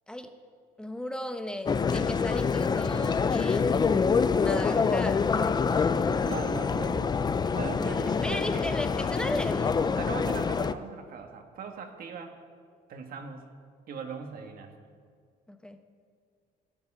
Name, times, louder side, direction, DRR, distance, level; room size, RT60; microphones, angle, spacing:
voice 1, 0.8-5.4 7.8-9.8 15.5-15.8, left 1 dB, 5° left, 7 dB, 1.0 m, -36 dB
sound 1, 1.7-10.7, left 5 dB, 25° left, 0.5 m, -26 dB
voice 2, 6.2-8.7 10.0-12.3 12.9-13.4 13.9-14.7, right 6 dB, 60° right, 4 dB, 1.7 m, -39 dB
14.0 x 6.7 x 9.9 m, 2.1 s
cardioid pair, 110°, 17 cm